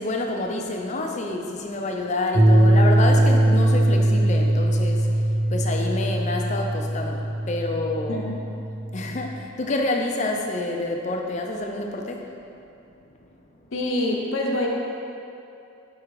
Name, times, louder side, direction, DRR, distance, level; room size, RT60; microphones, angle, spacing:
voice 1, 0.0-8.2 8.9-12.3 13.0-13.1, left 2 dB, 35° left, 1 dB, 0.5 m, -28 dB
sound 1, 2.3-9.4, right 1 dB, 20° right, 0.4 m, -21 dB
voice 2, 8.1-8.4 13.7-14.7, left 1 dB, 75° left, -1 dB, 0.8 m, -25 dB
5.0 x 4.7 x 4.7 m, 2.7 s
head